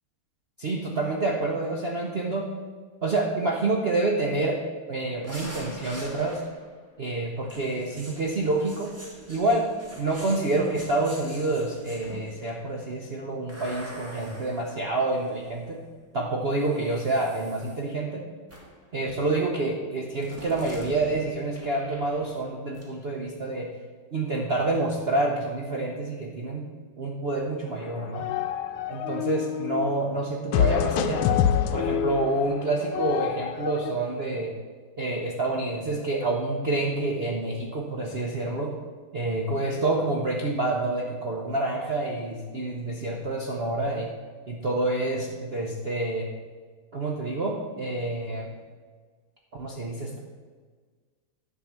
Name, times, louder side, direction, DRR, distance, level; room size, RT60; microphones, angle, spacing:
voice 1, 0.6-2.5 3.0-4.6 4.9-6.4 7.0-8.9 9.3-9.7 10.0-15.8 16.1-18.2 18.9-23.7 24.1-26.6 27.0-28.3 28.9-31.3 31.7-34.5 35.0-38.7 39.1-44.1 44.5-46.3 46.9-48.5 49.5-50.2, right 2 dB, 85° right, -1 dB, 0.5 m, -28 dB
sound 1, 5.2-6.8 7.5-12.5 13.5-15.6 16.6-17.8 18.5-18.9 20.2-22.5 22.7-22.9, equal, 10° right, 1.5 m, -45 dB
sound 2, 27.8-30.0 30.5-33.9, left 10 dB, 80° left, 1.4 m, -26 dB
10.5 x 3.8 x 7.2 m, 1.5 s
omnidirectional pair, 2.3 m